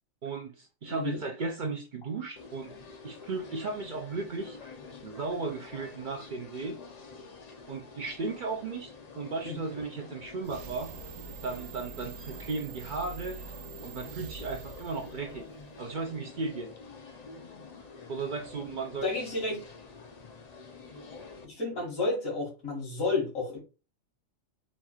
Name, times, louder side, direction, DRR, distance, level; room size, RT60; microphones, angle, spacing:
voice 1, 0.2-2.7 3.0-4.6 5.0-6.8 7.7-10.9 11.4-13.4 13.8-15.5 15.8-16.7 18.1-19.1, right 4 dB, 55° right, 0.6 m, -35 dB
voice 2, 0.8-1.2 9.4-9.6 19.0-19.6 21.4-23.6, left 3 dB, 85° left, 2.0 m, -31 dB
sound 1, 2.4-21.5, left 4 dB, 40° left, 0.6 m, -48 dB
sound 2, 10.4-15.9, right 7 dB, 75° right, 1.0 m, -45 dB
4.2 x 2.4 x 4.3 m
omnidirectional pair, 1.4 m